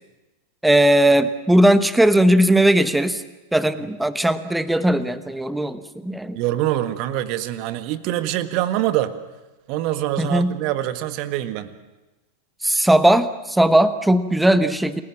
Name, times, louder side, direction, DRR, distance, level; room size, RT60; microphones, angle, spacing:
voice 1, 0.6-3.2 3.5-6.4 10.2-10.6 12.6-15.0, right 1 dB, 5° right, 12 dB, 1.1 m, -18 dB
voice 2, 6.3-9.1 9.7-11.7, right 13 dB, 45° right, 10 dB, 1.7 m, -24 dB
29.0 x 20.0 x 7.5 m, 1.1 s
figure-of-eight pair, 90°, 0 cm